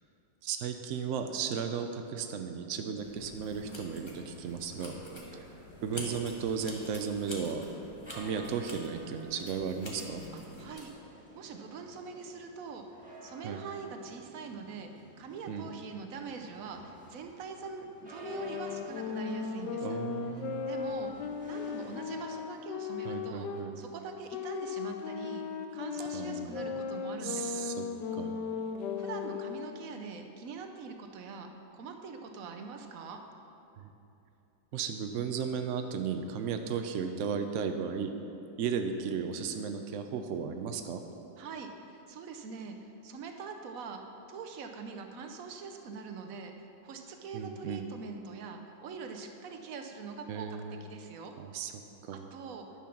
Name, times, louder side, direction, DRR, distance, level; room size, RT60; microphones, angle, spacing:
voice 1, 0.4-4.9 5.3-5.4 5.8-7.6 8.1-10.2 13.4-13.6 15.5-15.7 19.8-20.7 23.0-23.8 26.1-26.6 27.2-27.9 28.1-28.4 33.8-33.9 34.7-38.1 38.6-41.0 47.3-47.9 50.3-50.9 51.4-52.3, right 6 dB, 85° right, 6 dB, 0.6 m, -35 dB
sound 1, 3.0-10.9, left 1 dB, 20° left, 1.1 m, -47 dB
sound 2, 4.1-22.3, right 2 dB, 5° right, 1.5 m, -53 dB
voice 2, 10.6-10.9 11.3-14.9 15.2-20.0 20.6-23.5 23.8-25.5 25.7-27.7 29.0-33.2 41.4-44.0 44.3-51.3 52.1-52.7, right 5 dB, 60° right, 5 dB, 1.0 m, -43 dB
sound 3, 18.2-23.7 24.3-29.6, left 6 dB, 70° left, 1.2 m, -37 dB
10.5 x 6.3 x 5.9 m, 2.8 s
omnidirectional pair, 2.0 m